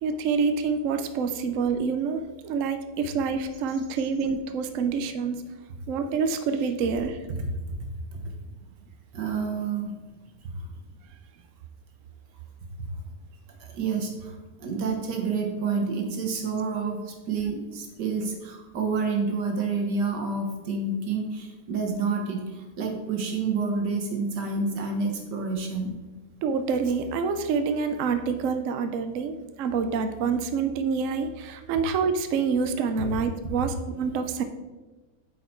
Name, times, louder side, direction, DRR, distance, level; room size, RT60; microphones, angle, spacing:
voice 1, 0.0-5.4 5.9-7.2 26.4-34.4, right 5 dB, 65° right, 8 dB, 0.9 m, -27 dB
voice 2, 9.1-9.9 13.7-14.4 14.6-25.9, right 4 dB, 85° right, 3 dB, 1.9 m, -28 dB
8.3 x 5.1 x 4.4 m, 1.2 s
omnidirectional pair, 1.8 m